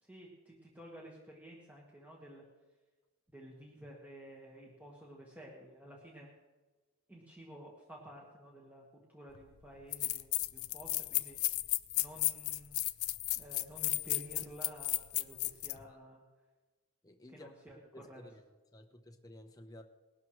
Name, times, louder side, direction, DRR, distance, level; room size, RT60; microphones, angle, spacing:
voice 1, 0.0-2.4 3.3-6.3 7.1-11.4 12.0-12.8 13.3-16.2 17.3-17.8 18.1-18.2, equal, 5° right, -3 dB, 1.6 m, -52 dB
sound 1, 9.3-9.4 9.9-15.8, left 17 dB, 75° left, 0.6 m, -34 dB
voice 2, 17.0-18.4 18.7-19.8, left 1 dB, 15° left, 4 dB, 0.9 m, -54 dB
20.0 x 12.0 x 3.2 m, 1.2 s
head